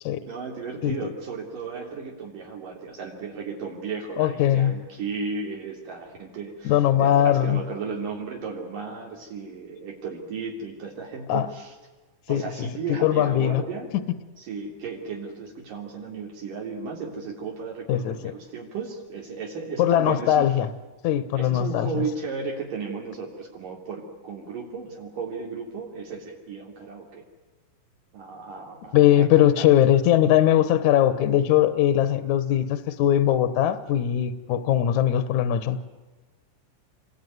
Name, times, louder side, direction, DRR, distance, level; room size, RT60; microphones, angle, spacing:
voice 1, 0.2-11.7 12.3-13.9 14.4-20.5 21.3-27.2 28.1-29.7, right 5 dB, 70° right, -1 dB, 5.0 m, -35 dB
voice 2, 4.2-4.7 6.6-7.6 11.3-11.5 12.3-12.7 13.0-13.6 17.9-18.1 19.8-20.7 21.0-22.0 28.9-35.8, left 11 dB, 65° left, 12 dB, 2.4 m, -20 dB
28.0 x 22.0 x 9.5 m, 1.2 s
omnidirectional pair, 3.9 m